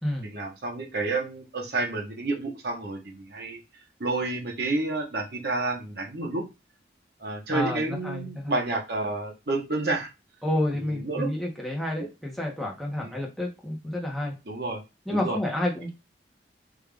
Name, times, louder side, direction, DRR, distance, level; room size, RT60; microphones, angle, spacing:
voice 1, 0.2-3.6 4.0-6.4 7.2-10.1 10.9-11.3 13.0-13.1 14.5-14.8 15.1-15.4, right 2 dB, 60° right, 1 dB, 0.9 m, -30 dB
voice 2, 7.5-8.6 10.4-14.4 15.1-15.9, left 1 dB, ahead, -1 dB, 0.8 m, -30 dB
3.6 x 2.4 x 3.3 m, 0.26 s
head